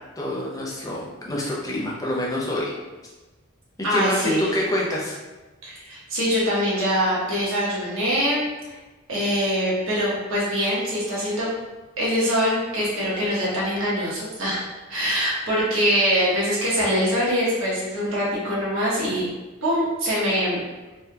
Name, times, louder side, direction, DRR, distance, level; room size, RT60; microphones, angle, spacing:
voice 1, 0.2-2.7 3.9-5.1, left 1 dB, 15° left, -4 dB, 0.5 m, -26 dB
voice 2, 3.8-4.5 5.6-8.5 9.1-11.5 12.0-14.6 14.9-19.2 19.6-20.6, equal, 75° right, -7 dB, 1.1 m, -23 dB
3.3 x 2.8 x 2.3 m, 1.2 s
head